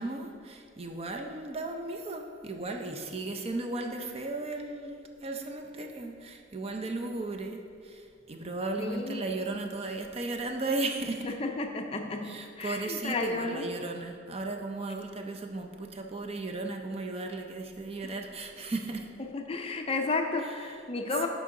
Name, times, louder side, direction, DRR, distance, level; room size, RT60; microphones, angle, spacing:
voice 1, 0.0-11.3 12.2-19.1 20.4-20.8, right 2 dB, 30° right, 4 dB, 0.4 m, -36 dB
voice 2, 8.8-9.2 11.2-13.7 18.0-18.1 19.3-21.3, left 3 dB, 30° left, 4 dB, 0.4 m, -32 dB
8.3 x 5.1 x 3.7 m, 2.3 s
head